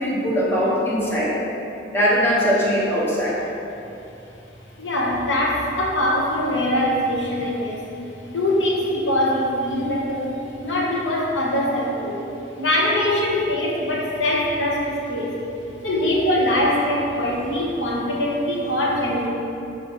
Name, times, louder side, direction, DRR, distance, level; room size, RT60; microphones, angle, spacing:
voice 1, 0.0-1.3 1.9-3.4, equal, 15° left, -8 dB, 1.3 m, -20 dB
voice 2, 4.8-8.0 8.3-12.3 12.6-15.5 15.8-19.3, left 1 dB, 90° left, -3 dB, 1.1 m, -22 dB
6.9 x 6.3 x 3.1 m, 2.9 s
head